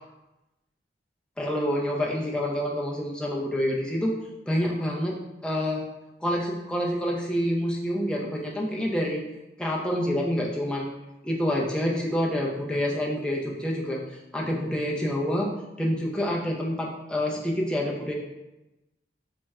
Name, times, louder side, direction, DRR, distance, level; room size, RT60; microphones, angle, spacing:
voice 1, 1.4-4.1 4.5-5.2 5.4-5.8 6.2-9.2 9.6-10.9 11.2-15.5 15.8-18.1, equal, 5° left, -3 dB, 0.4 m, -27 dB
4.1 x 2.1 x 3.5 m, 1.0 s
head